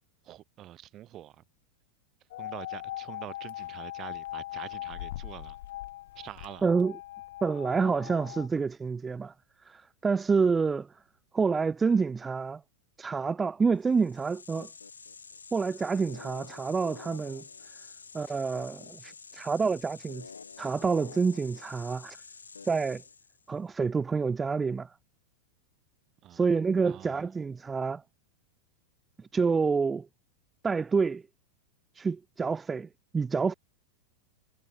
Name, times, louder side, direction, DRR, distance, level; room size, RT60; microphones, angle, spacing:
voice 1, 0.2-1.4 2.4-5.6 6.2-6.7 26.2-26.4 26.8-27.3, right 13 dB, 30° right, 7.9 m, -45 dB
sound 1, 2.3-8.5, left 15 dB, 55° left, 1.2 m, -40 dB
voice 2, 6.6-6.9 7.4-9.3 9.7-10.9 11.3-12.6 13.0-14.7 15.5-17.4 18.1-20.3 20.6-22.2 22.6-23.0 23.5-24.9 26.3-28.0 29.3-30.1 30.6-31.2 31.9-33.5, right 5 dB, 15° right, 0.4 m, -28 dB
sound 2, 13.9-23.4, left 5 dB, 75° left, 1.4 m, -48 dB
figure-of-eight pair, 90°, 0 cm